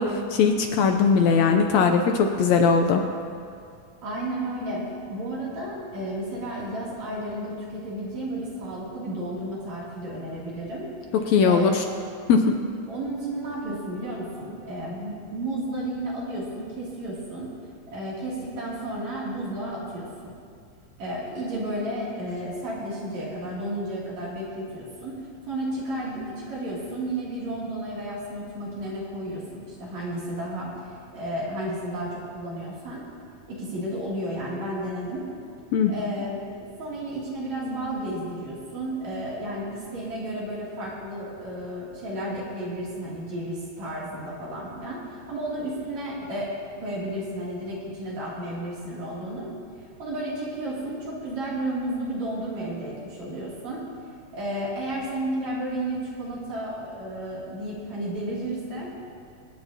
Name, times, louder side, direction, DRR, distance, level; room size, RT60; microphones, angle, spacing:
voice 1, 0.0-3.0 11.1-11.8 12.3-12.5 35.7-35.9, left 5 dB, 75° left, 4 dB, 1.7 m, -20 dB
voice 2, 4.0-4.8 5.1-10.9 11.4-11.8 12.9-17.5 17.9-20.3 21.0-25.2 25.5-30.7 31.1-33.0 33.5-35.2 35.9-46.5 46.8-49.5 50.0-53.8 54.3-58.9, right 1 dB, 65° right, -7 dB, 4.0 m, -32 dB
25.0 x 9.3 x 2.8 m, 2.3 s
omnidirectional pair, 3.5 m